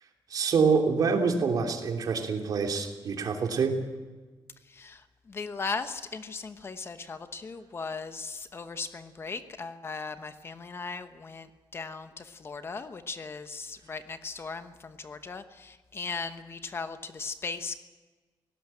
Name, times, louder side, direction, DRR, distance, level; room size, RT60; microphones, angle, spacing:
voice 1, 0.3-3.8, right 5 dB, 50° right, 4 dB, 3.0 m, -26 dB
voice 2, 4.6-17.8, left 4 dB, 30° left, 10 dB, 1.0 m, -38 dB
18.5 x 18.0 x 9.0 m, 1.3 s
wide cardioid pair, 155°, 8 cm